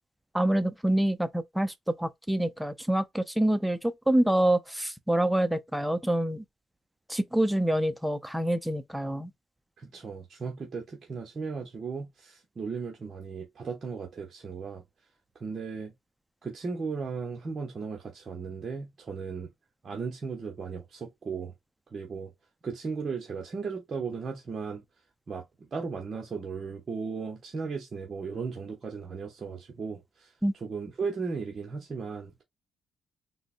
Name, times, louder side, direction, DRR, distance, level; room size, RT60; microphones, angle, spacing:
voice 1, 0.3-6.4 7.1-9.3 30.4-30.5, right 1 dB, 5° right, 0.4 m, -26 dB
voice 2, 9.8-14.8 15.4-15.9 16.4-19.5 19.8-21.5 21.9-22.3 22.6-24.8 25.3-32.4, right 5 dB, 40° right, 0.7 m, -36 dB
3.7 x 2.1 x 2.5 m
cardioid pair, 90°, 0 cm